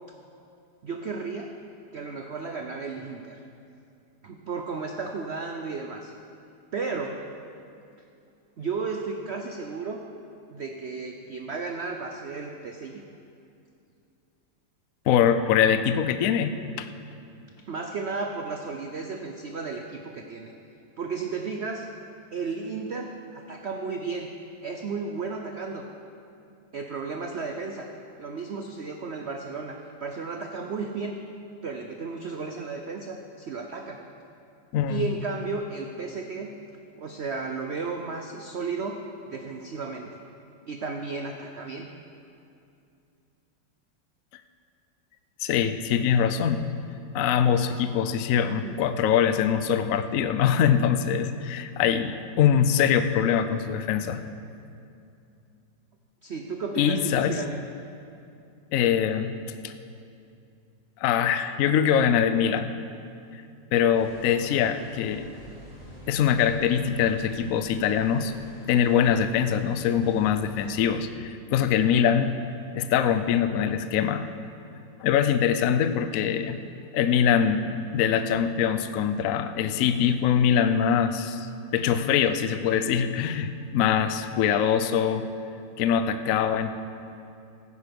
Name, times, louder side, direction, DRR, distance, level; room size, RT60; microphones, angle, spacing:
voice 1, 0.8-1.5 1.9-3.4 4.2-6.1 6.7-7.1 8.6-10.0 10.5-13.0 17.7-20.5 21.0-21.9 22.3-24.3 24.6-25.8 26.7-27.9 28.2-31.2 31.6-34.0 34.9-36.5 37.0-39.0 39.3-40.1 40.7-41.9 48.6-48.8 56.2-57.6, right 4 dB, 70° right, 3 dB, 0.6 m, -33 dB
voice 2, 15.1-16.9 34.7-35.1 45.4-46.6 47.1-54.2 56.8-57.4 58.7-59.4 59.6-59.7 61.0-62.7 63.3-63.4 63.7-65.3 66.1-68.3 68.7-72.4 72.7-74.3 75.0-76.6 76.9-77.7 77.9-85.3 85.8-86.7, left 8 dB, 70° left, 10 dB, 0.8 m, -23 dB
sound 1, 63.9-70.7, equal, 20° right, 3.0 m, -46 dB
15.0 x 9.8 x 5.2 m, 2.6 s
omnidirectional pair, 2.0 m